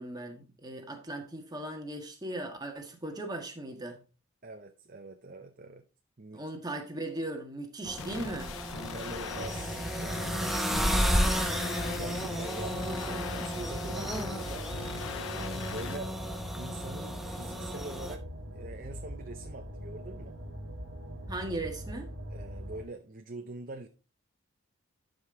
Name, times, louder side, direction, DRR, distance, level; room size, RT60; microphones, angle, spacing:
voice 1, 0.0-4.0 6.3-8.6 21.3-22.1, right 1 dB, 20° right, 1.5 m, -38 dB
voice 2, 4.4-5.8 6.2-6.4 8.8-11.5 12.0-14.7 15.1-16.2 16.5-18.3 18.5-20.3 22.3-23.9, right 2 dB, 40° right, 0.7 m, -44 dB
sound 1, 7.8-18.1, equal, ahead, 0.9 m, -33 dB
sound 2, 8.0-16.0, left 8 dB, 70° left, 0.4 m, -42 dB
sound 3, 9.3-22.8, equal, 60° right, 1.4 m, -42 dB
12.0 x 5.2 x 3.8 m
head